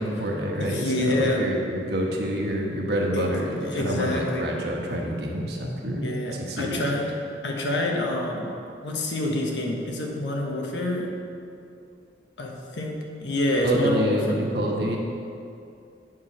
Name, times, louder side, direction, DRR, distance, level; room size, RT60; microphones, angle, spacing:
voice 1, 0.0-6.1 6.5-6.8 13.6-15.0, right 1 dB, 70° right, -1 dB, 1.2 m, -27 dB
voice 2, 0.6-1.5 3.1-3.3 3.6-4.6 6.0-8.6 8.8-11.2 12.4-14.4, left 1 dB, 90° left, 0 dB, 1.2 m, -27 dB
8.6 x 4.7 x 6.1 m, 2.5 s
head